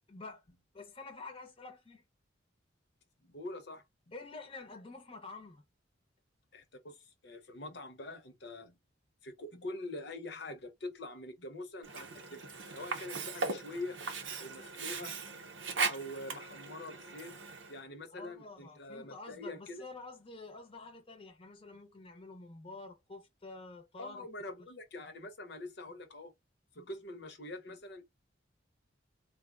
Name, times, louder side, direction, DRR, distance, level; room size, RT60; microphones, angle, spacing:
voice 1, 0.1-0.4 0.7-2.0 4.1-5.6 18.1-24.3, left 3 dB, 30° left, 0.7 m, -48 dB
voice 2, 3.2-3.8 6.5-8.8 9.2-12.4 12.7-14.0 14.4-15.2 15.9-17.3 17.7-19.8 24.0-26.3 26.7-28.0, left 2 dB, 60° left, 0.8 m, -44 dB
Sink (filling or washing), 11.8-17.8, right 4 dB, 80° right, 0.7 m, -39 dB
3.8 x 2.2 x 2.3 m
head